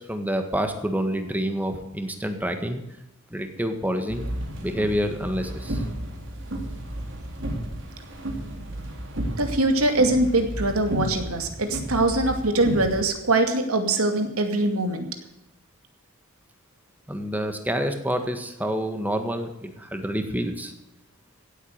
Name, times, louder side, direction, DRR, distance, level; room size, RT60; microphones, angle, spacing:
voice 1, 0.0-2.8 3.3-4.3 4.6-5.8 17.1-20.7, equal, 10° right, 6 dB, 1.6 m, -28 dB
sound 1, 4.1-13.0, right 1 dB, 55° right, 3.5 m, -32 dB
voice 2, 9.4-15.1, right 2 dB, 85° right, 5 dB, 2.4 m, -23 dB
16.5 x 8.5 x 6.6 m, 0.90 s
head